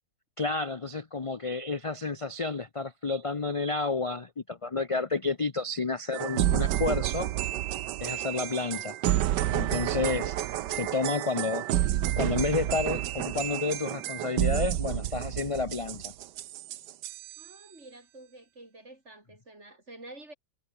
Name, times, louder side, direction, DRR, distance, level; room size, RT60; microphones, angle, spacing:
voice 1, 0.4-7.3 8.0-9.0 9.5-10.3 10.7-16.1, left 3 dB, 35° left, 0.5 m, -30 dB
sound 1, 6.1-17.5, right 13 dB, 85° right, 1.4 m, -30 dB
voice 2, 17.4-20.3, right 2 dB, 40° right, 5.7 m, -49 dB
omnidirectional pair, 1.8 m